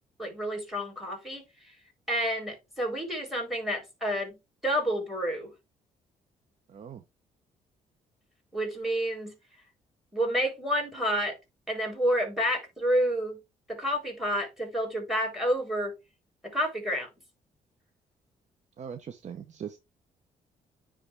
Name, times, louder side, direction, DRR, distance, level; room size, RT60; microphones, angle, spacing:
voice 1, 0.2-1.4 2.1-4.4 4.6-5.5 8.5-9.3 10.1-11.4 11.7-13.4 13.7-16.0 16.4-17.1, equal, ahead, 3.9 m, -29 dB
voice 2, 6.7-7.0 18.8-19.8, right 8 dB, 50° right, 0.7 m, -40 dB
9.6 x 3.6 x 3.4 m
cardioid pair, 85°, 15 cm